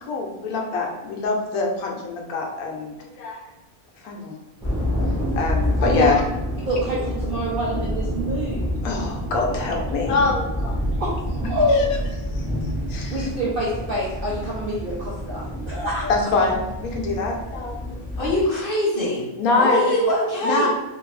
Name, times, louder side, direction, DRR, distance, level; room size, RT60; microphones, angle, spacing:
voice 1, 0.0-3.4 4.0-4.3 5.4-6.2 8.8-10.8 11.7-11.8 12.4-12.5 12.9-13.3 16.1-18.0 19.4-19.9 20.4-20.7, left 3 dB, 80° left, 0 dB, 1.1 m, -24 dB
sound 1, 4.6-18.5, equal, 5° left, 0.7 m, -28 dB
voice 2, 6.7-8.8 11.0-12.0 13.1-16.1 19.5-19.6, equal, 65° right, -5 dB, 0.5 m, -26 dB
voice 3, 18.2-19.2 19.6-20.7, left 1 dB, 50° left, -4 dB, 0.7 m, -22 dB
2.6 x 2.6 x 3.1 m, 1.0 s
omnidirectional pair, 1.6 m